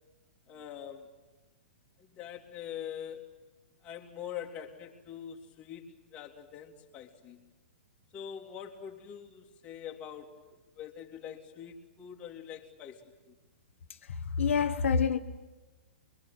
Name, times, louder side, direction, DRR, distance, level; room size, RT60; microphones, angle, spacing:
voice 1, 0.5-1.1 2.0-3.3 3.8-7.5 8.1-13.3, left 9 dB, 20° left, 3.0 m, -44 dB
voice 2, 14.0-15.2, left 6 dB, 75° left, 1.5 m, -27 dB
25.5 x 23.5 x 9.3 m
hypercardioid pair, 160°, 7 cm